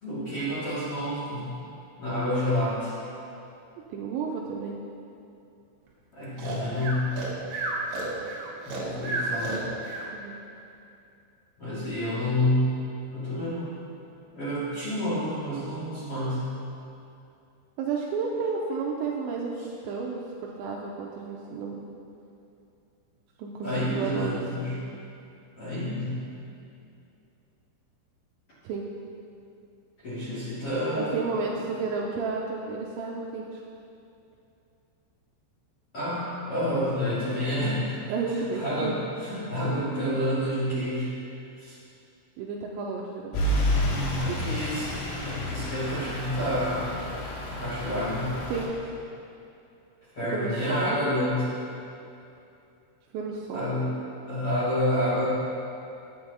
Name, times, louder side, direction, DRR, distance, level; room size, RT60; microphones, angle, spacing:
voice 1, 0.0-1.5 2.0-2.9 6.1-7.2 8.6-9.7 11.6-12.8 13.1-13.7 14.3-16.4 23.6-24.8 25.6-26.2 30.0-31.1 31.6-31.7 35.9-38.0 38.4-41.1 41.6-41.7 44.2-44.9 45.2-47.0 47.5-48.4 50.1-51.5 53.5-53.9 54.3-55.2, left 1 dB, 45° left, -12 dB, 2.0 m, -29 dB
voice 2, 3.8-4.8 10.1-10.4 17.8-21.8 23.4-24.4 28.6-28.9 30.9-33.6 38.1-39.0 42.4-43.4 44.3-44.4 48.5-48.7 50.3-51.0 53.1-53.7, right 4 dB, 85° right, -1 dB, 2.7 m, -32 dB
Breathing, 6.4-10.1, right 2 dB, 70° right, 2.3 m, -32 dB
Truck / Idling, 43.3-48.7, left 1 dB, 85° left, 4.2 m, -30 dB
9.6 x 8.7 x 3.9 m, 2.6 s
omnidirectional pair, 5.6 m